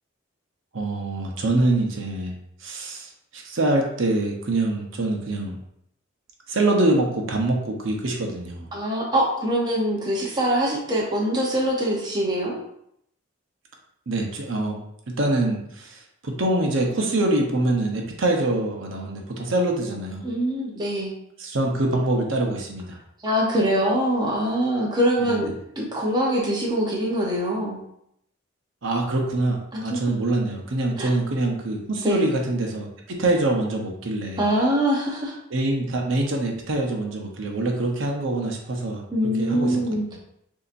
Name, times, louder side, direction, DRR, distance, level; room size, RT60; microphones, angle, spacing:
voice 1, 0.7-2.3 2.6-5.6 6.5-8.7 14.1-14.8 15.1-20.2 21.4-23.0 25.3-25.4 28.8-34.4 35.5-39.0 39.4-39.8, right 2 dB, 65° right, 1 dB, 0.8 m, -24 dB
voice 2, 8.7-12.6 20.2-21.1 23.2-27.8 29.7-30.0 31.0-31.1 32.0-32.2 34.4-35.4 39.1-40.2, right 1 dB, 20° right, -3 dB, 0.8 m, -23 dB
6.8 x 2.8 x 2.6 m, 0.74 s
head